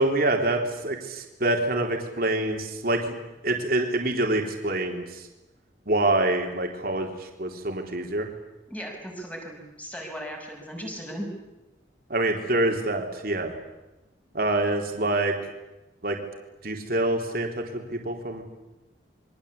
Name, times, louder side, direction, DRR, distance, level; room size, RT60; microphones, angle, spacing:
voice 1, 0.0-3.1 3.4-5.3 5.9-8.3 12.1-13.5 14.3-15.4 16.0-16.2 16.6-18.4, right 2 dB, 50° right, 2 dB, 3.8 m, -26 dB
voice 2, 8.7-11.3, equal, 10° left, 1 dB, 6.2 m, -37 dB
28.0 x 23.5 x 8.5 m, 1.0 s
head